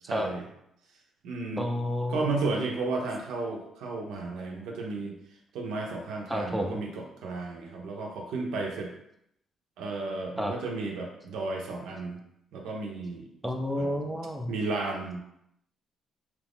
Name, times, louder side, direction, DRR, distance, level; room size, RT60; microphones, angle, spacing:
voice 1, 0.1-0.4 1.2-1.7 2.1-5.2 5.5-8.9 9.8-12.2 12.5-13.3 13.8-13.9 14.5-15.2, right 3 dB, 90° right, 0 dB, 0.6 m, -33 dB
voice 2, 1.6-2.4 6.3-6.8 10.4-10.5 13.4-14.5, left 1 dB, 5° right, 2 dB, 0.5 m, -30 dB
2.9 x 2.5 x 3.5 m, 0.77 s
cardioid pair, 90°, 0 cm